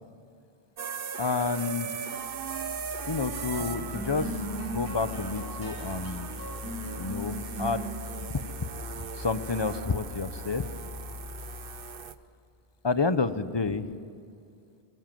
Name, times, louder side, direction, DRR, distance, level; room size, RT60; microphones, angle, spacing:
sound 1, 0.8-12.1, right 7 dB, 60° right, 1.0 m, -39 dB
voice 1, 1.2-2.0 3.0-4.4 4.7-6.3 7.0-7.9 9.0-10.7 12.8-13.9, left 4 dB, 25° left, 12 dB, 0.8 m, -29 dB
sound 2, 2.3-11.9, left 2 dB, 15° right, 4.9 m, -39 dB
24.5 x 22.0 x 7.7 m, 2.4 s
omnidirectional pair, 1.1 m